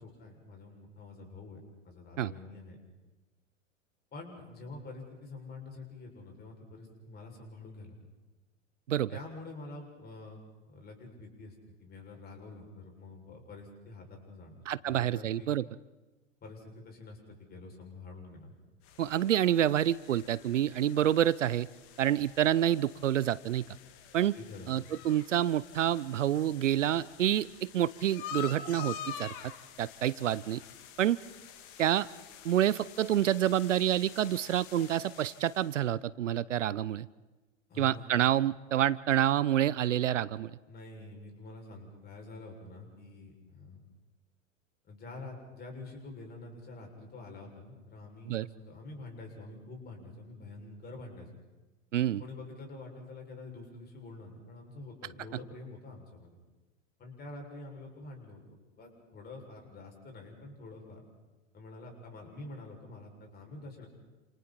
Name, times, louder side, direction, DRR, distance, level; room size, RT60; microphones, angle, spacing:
voice 1, 0.0-1.6 1.8-2.8 4.1-7.9 9.1-11.5 11.8-15.5 16.4-18.5 24.3-24.7 37.7-38.1 40.7-43.8 44.8-51.3 52.2-56.3 57.0-58.4 58.8-61.0 61.5-63.9, left 2 dB, 25° left, 2 dB, 6.6 m, -47 dB
voice 2, 14.7-15.6 19.0-21.7 22.0-23.6 24.1-24.3 24.7-29.3 29.8-30.6 31.0-31.2 31.8-32.1 32.4-37.1 37.8-40.5 48.3-48.5 51.9-52.2, right 11 dB, 70° right, 21 dB, 0.7 m, -28 dB
sound 1, 18.8-35.8, left 9 dB, 45° left, 2.3 m, -48 dB
29.0 x 28.0 x 4.4 m, 1.2 s
figure-of-eight pair, 95°, 38 cm